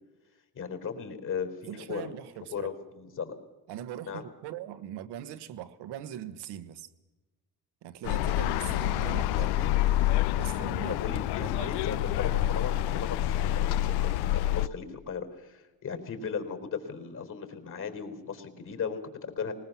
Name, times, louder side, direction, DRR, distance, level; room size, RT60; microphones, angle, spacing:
voice 1, 0.5-2.1 2.5-3.4 4.1-4.3 11.0-19.5, left 6 dB, 50° left, 4.3 m, -37 dB
voice 2, 1.7-2.7 3.7-6.9 7.8-9.9 10.4-12.2, right 11 dB, 80° right, 1.3 m, -41 dB
sound 1, 8.0-14.7, left 14 dB, 75° left, 0.6 m, -27 dB
20.0 x 20.0 x 7.3 m
supercardioid pair, 75°, 40 cm